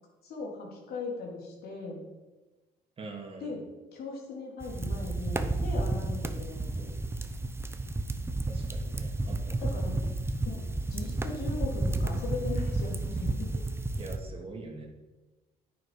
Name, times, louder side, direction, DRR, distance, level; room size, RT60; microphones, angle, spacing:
voice 1, 0.2-2.0 3.4-3.6 3.9-6.9 9.6-10.0 10.4-13.6, left 3 dB, 65° left, -1 dB, 3.6 m, -39 dB
voice 2, 3.0-3.6 8.5-9.8 14.0-14.9, right 3 dB, 35° right, 1 dB, 2.3 m, -43 dB
sound 1, 4.6-14.2, right 2 dB, 15° right, 0.9 m, -32 dB
9.6 x 9.5 x 5.2 m, 1.2 s
cardioid pair, 110°, 17 cm